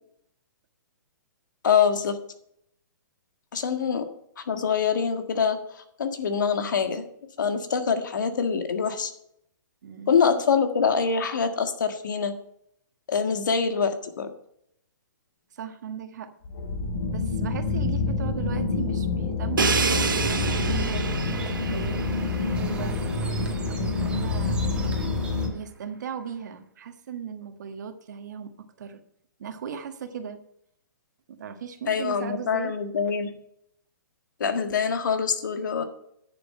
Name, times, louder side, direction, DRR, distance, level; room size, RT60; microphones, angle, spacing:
voice 1, 1.6-2.2 3.5-4.0 4.4-7.0 7.4-9.1 10.1-12.3 13.1-14.3 31.9-33.3 34.4-35.8, left 6 dB, 70° left, 7 dB, 1.7 m, -25 dB
voice 2, 9.8-10.4 15.5-16.3 17.1-22.0 22.5-23.0 23.6-24.6 25.5-29.0 29.4-30.4 31.3-32.7, right 7 dB, 60° right, 7 dB, 1.5 m, -37 dB
sound 1, 16.4-25.5, left 3 dB, 55° left, 3.7 m, -27 dB
Crash cymbal, 19.6-23.4, right 5 dB, 90° right, 1.1 m, -28 dB
sound 2, 19.7-25.5, right 3 dB, 10° right, 1.7 m, -41 dB
11.0 x 6.9 x 5.5 m, 0.75 s
hypercardioid pair, 140°, 11 cm